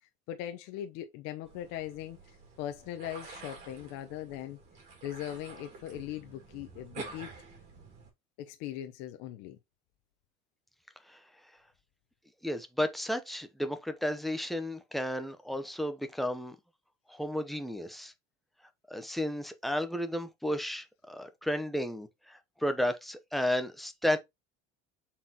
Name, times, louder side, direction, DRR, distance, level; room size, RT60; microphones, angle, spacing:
voice 1, 0.3-2.2 2.6-4.6 5.0-7.3 8.4-9.6, left 12 dB, 65° left, 0.8 m, -40 dB
sound 1, 1.5-8.1, right 4 dB, 40° right, 2.9 m, -49 dB
voice 2, 12.4-16.6 17.1-18.1 18.9-24.2, left 1 dB, ahead, 0.8 m, -33 dB
7.4 x 4.5 x 2.9 m
cardioid pair, 165°, 19 cm